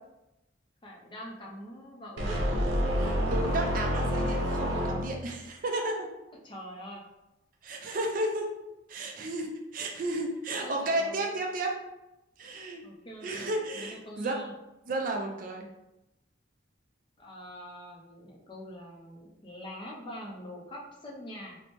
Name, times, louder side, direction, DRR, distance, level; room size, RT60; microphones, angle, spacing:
voice 1, 0.8-2.4 6.4-7.0 10.6-11.4 12.4-14.5 17.2-21.6, equal, 25° left, -2 dB, 0.4 m, -44 dB
sound 1, 2.2-5.4, equal, 80° right, 0.7 m, -28 dB
voice 2, 3.0-6.1 7.6-8.5 8.9-11.7 12.4-12.8 13.2-14.4 14.9-15.7, right 2 dB, 45° right, 1 dB, 0.4 m, -33 dB
3.0 x 2.0 x 2.9 m, 0.93 s
head